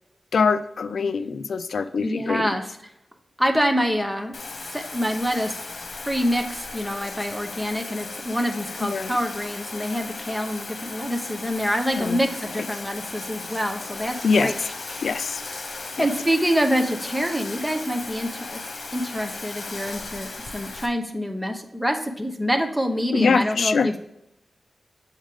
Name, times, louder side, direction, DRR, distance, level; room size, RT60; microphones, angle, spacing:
voice 1, 0.3-2.5 8.8-9.1 12.0-12.2 14.2-14.5 15.0-15.4 16.0-16.1 23.1-23.9, left 5 dB, 85° left, 13 dB, 0.3 m, -23 dB
voice 2, 2.0-2.7 3.4-4.4 4.7-5.6 6.0-15.0 16.0-18.6 18.9-24.0, equal, 5° right, 4 dB, 0.9 m, -26 dB
Bathtub (filling or washing), 4.3-20.9, left 3 dB, 60° left, 1.2 m, -36 dB
7.2 x 5.0 x 3.6 m, 0.84 s
wide cardioid pair, 125°, 0 cm